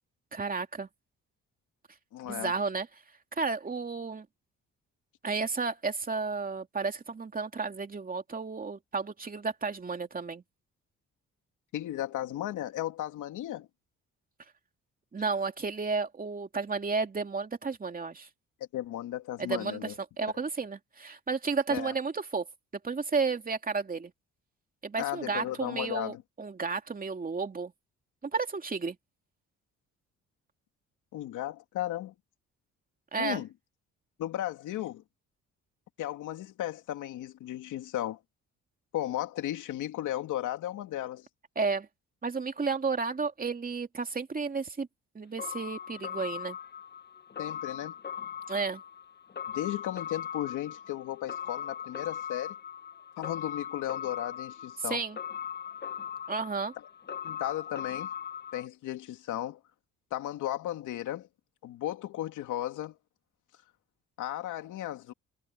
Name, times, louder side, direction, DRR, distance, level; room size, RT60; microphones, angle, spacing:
voice 1, 0.3-0.9 2.3-2.9 3.4-4.3 5.2-10.4 15.1-18.3 19.4-22.5 22.8-24.1 24.8-27.7 28.2-29.0 33.1-33.4 41.6-41.9 42.2-44.9 45.1-46.6 48.5-48.8 54.9-55.2 56.3-56.7, right 4 dB, 30° right, 2.7 m, -32 dB
voice 2, 2.1-2.5 11.7-13.7 18.7-19.9 21.7-21.9 25.0-26.2 31.1-32.1 33.2-33.5 34.2-35.0 36.0-38.2 38.9-41.3 47.4-47.9 49.5-52.5 53.2-55.0 57.2-58.1 58.5-59.6 60.1-61.3 61.6-63.0 64.2-65.1, left 13 dB, 85° left, 2.6 m, -35 dB
sound 1, 45.4-58.7, left 8 dB, 35° left, 1.0 m, -39 dB
cardioid pair, 90°, 30 cm